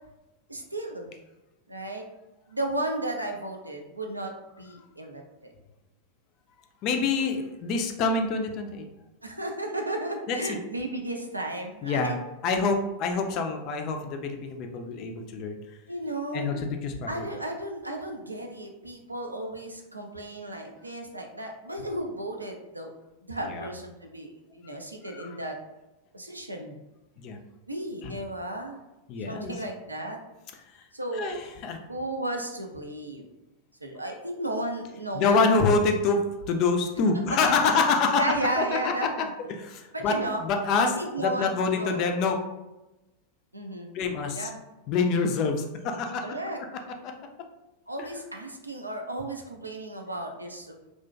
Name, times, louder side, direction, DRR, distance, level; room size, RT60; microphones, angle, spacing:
voice 1, 0.5-1.1 1.7-2.0 2.5-4.3 4.6-5.5 9.2-12.2 15.9-16.5 17.1-22.9 23.3-25.6 26.1-26.8 27.7-28.8 29.3-30.2 30.9-31.4 31.9-33.3 33.8-35.6 37.3-37.4 38.2-39.3 39.9-40.4 41.0-42.3 43.5-44.0 44.3-44.6 46.2-46.6 47.9-50.7, right 1 dB, 85° right, 2 dB, 0.3 m, -34 dB
voice 2, 6.8-8.9 10.3-10.6 11.8-12.2 12.4-15.6 16.3-17.3 23.4-23.7 25.0-25.4 27.2-27.4 28.0-28.2 29.1-29.6 30.7-30.8 31.1-31.8 35.1-38.3 38.6-38.9 39.2-42.4 43.9-44.5 44.9-46.3 48.0-48.1, left 4 dB, 40° left, 4 dB, 0.3 m, -26 dB
2.4 x 2.1 x 2.4 m, 1.0 s
figure-of-eight pair, 90°, 0 cm